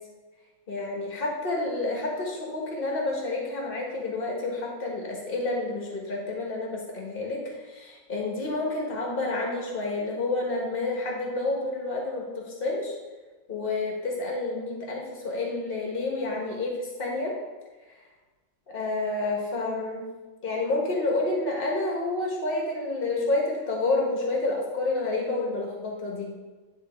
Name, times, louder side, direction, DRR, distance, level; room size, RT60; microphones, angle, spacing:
voice 1, 0.7-12.9 13.5-17.4 17.9-18.0 18.7-20.1 20.4-26.3, left 2 dB, 35° left, -2 dB, 1.6 m, -29 dB
10.0 x 4.1 x 3.6 m, 1.3 s
omnidirectional pair, 1.9 m